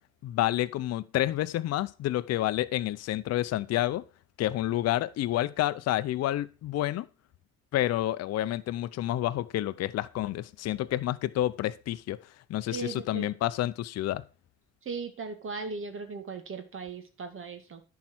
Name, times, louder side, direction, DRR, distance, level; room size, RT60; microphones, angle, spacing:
voice 1, 0.2-4.0 4.4-7.1 7.7-12.2 12.5-14.2, left 14 dB, 55° left, 0.6 m, -29 dB
voice 2, 12.7-13.3 14.9-17.8, right 4 dB, 40° right, 2.0 m, -38 dB
10.5 x 4.7 x 6.0 m
supercardioid pair, 85°, 31 cm